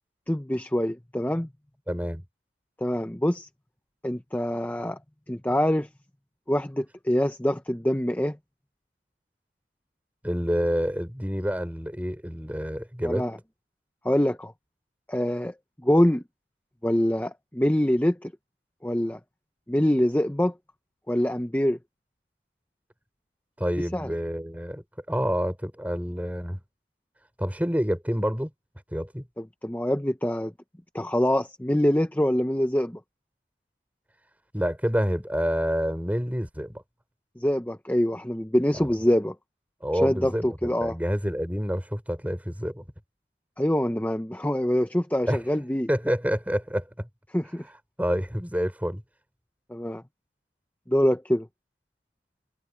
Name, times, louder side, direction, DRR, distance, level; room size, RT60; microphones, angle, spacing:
voice 1, 0.3-1.5 2.8-3.5 4.0-5.0 5.3-5.9 6.5-8.4 13.0-13.4 14.0-14.5 15.1-15.5 15.8-16.2 16.8-18.3 18.8-19.2 19.7-20.5 21.1-21.8 23.9-24.1 29.4-30.5 30.9-33.0 37.4-39.3 39.9-41.0 43.6-45.9 47.3-47.6 49.7-50.0 50.9-51.5, equal, 10° left, 0.7 m, -25 dB
voice 2, 1.9-2.2 10.2-13.2 23.6-26.6 27.4-28.5 28.9-29.2 34.5-36.8 38.7-38.9 39.8-42.8 45.3-45.4 45.9-47.1 48.0-49.0, equal, 10° right, 4.5 m, -28 dB
head